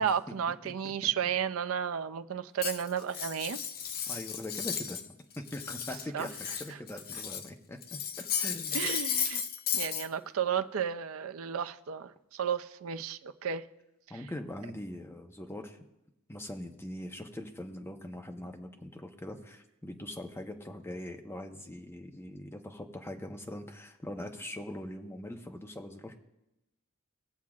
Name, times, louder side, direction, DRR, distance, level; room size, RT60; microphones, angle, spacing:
voice 1, 0.0-3.6 6.1-6.3 8.7-9.4 9.7-13.7 14.1-14.2, right 8 dB, 70° right, 0.5 m, -33 dB
voice 2, 0.6-1.1 4.1-5.0 5.4-8.0 8.4-9.0 14.1-15.8 16.3-26.2, left 1 dB, 10° left, 0.8 m, -42 dB
Cutlery silverware, 2.6-5.1 5.3-7.5 7.8-10.1, left 8 dB, 45° left, 0.6 m, -34 dB
19.5 x 7.4 x 2.4 m
head